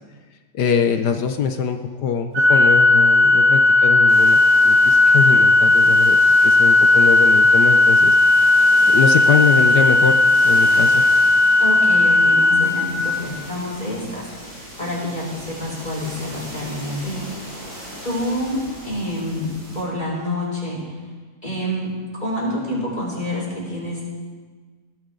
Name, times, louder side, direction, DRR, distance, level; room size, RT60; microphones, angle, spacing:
voice 1, 0.5-8.2 8.9-11.0, left 6 dB, 75° left, 6 dB, 1.5 m, -23 dB
Organ, 2.4-13.4, left 2 dB, 70° right, 1.9 m, -15 dB
sound 1, 4.1-19.8, equal, 50° right, 6.8 m, -38 dB
voice 2, 11.6-17.3 17.6-17.7 18.0-20.8 21.4-24.0, left 1 dB, 25° left, -6 dB, 6.4 m, -28 dB
20.0 x 18.5 x 3.9 m, 1.4 s
omnidirectional pair, 1.8 m